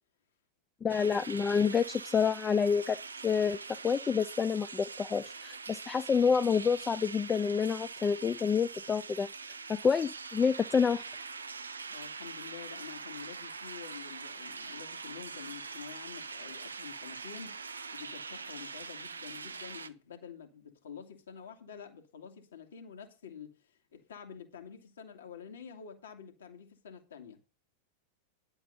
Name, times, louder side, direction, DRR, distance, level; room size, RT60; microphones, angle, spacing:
voice 1, 0.8-3.0 3.2-9.3 9.7-11.0, left 6 dB, 20° left, 0.5 m, -28 dB
sound 1, 0.9-19.9, right 4 dB, 75° right, 0.7 m, -43 dB
voice 2, 11.9-27.4, left 7 dB, 65° left, 2.3 m, -48 dB
11.0 x 7.8 x 5.3 m
figure-of-eight pair, 90°, 0 cm